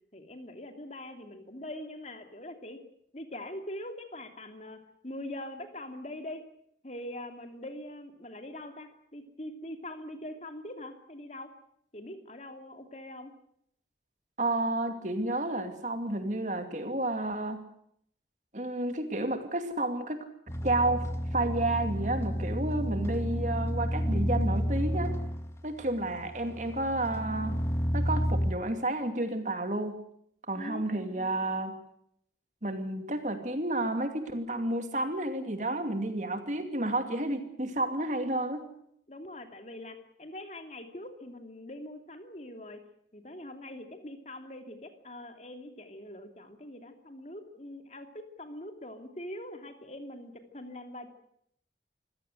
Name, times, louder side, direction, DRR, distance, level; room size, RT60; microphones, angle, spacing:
voice 1, 0.1-2.8 3.1-6.4 6.8-11.5 11.9-13.3 22.8-23.0 30.5-31.5 39.1-42.8 43.1-51.1, left 1 dB, 40° left, 6 dB, 2.9 m, -43 dB
voice 2, 14.4-17.6 18.5-20.3 20.6-21.0 21.3-25.2 25.6-27.6 27.9-30.0 30.5-31.7 32.6-38.6, right 2 dB, 45° right, 7 dB, 2.6 m, -31 dB
sound 1, 20.5-28.5, equal, 15° left, 1.8 m, -31 dB
26.0 x 16.5 x 8.0 m, 0.70 s
head